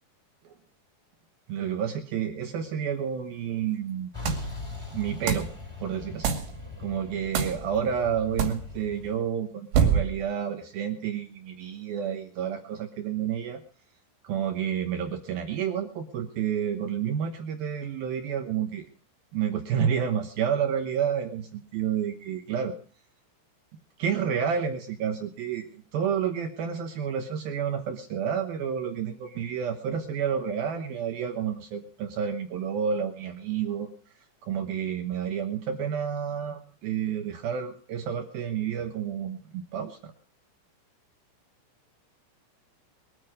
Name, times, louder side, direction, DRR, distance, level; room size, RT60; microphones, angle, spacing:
voice 1, 1.5-4.1 4.9-5.5 5.8-6.3 6.8-13.6 14.2-18.9 19.3-22.7 24.0-33.9 34.4-40.1, right 8 dB, 80° right, 5 dB, 2.1 m, -30 dB
Truck, 4.1-9.2, left 5 dB, 5° left, 3.4 m, -41 dB
sound 1, 4.3-4.6 5.3-5.6 6.2-6.6 7.3-7.6 8.4-8.6 9.7-10.2, right 7 dB, 60° right, 4.2 m, -25 dB
23.5 x 9.2 x 5.0 m, 0.42 s
omnidirectional pair, 6.0 m